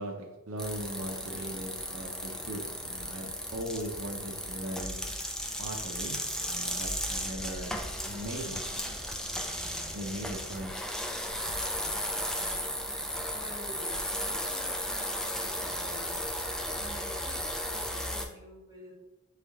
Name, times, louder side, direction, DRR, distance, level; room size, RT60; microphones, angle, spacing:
voice 1, 0.0-5.0 5.6-6.2 6.4-9.0 9.9-10.7, right 1 dB, 80° right, 1 dB, 0.6 m, -39 dB
sound 1, 0.6-18.2, equal, 5° left, 0.4 m, -35 dB
voice 2, 9.4-10.0 11.7-12.8 13.1-16.5 16.8-18.9, equal, 20° right, -6 dB, 1.5 m, -51 dB
4.3 x 3.4 x 3.5 m, 1.1 s
head